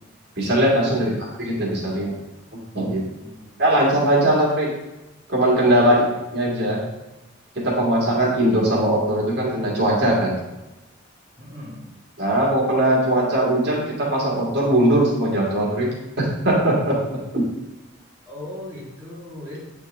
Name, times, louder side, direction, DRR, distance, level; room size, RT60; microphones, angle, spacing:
voice 1, 0.4-1.1 1.4-2.2 2.7-3.0 3.6-4.7 5.3-6.0 6.3-6.8 7.5-10.4 12.2-17.5, right 1 dB, 55° right, -4 dB, 2.1 m, -20 dB
voice 2, 0.9-1.3 3.2-3.6 5.8-6.2 11.4-11.9 18.3-19.6, left 1 dB, 15° right, -8 dB, 1.6 m, -39 dB
8.8 x 4.5 x 3.6 m, 1.0 s
head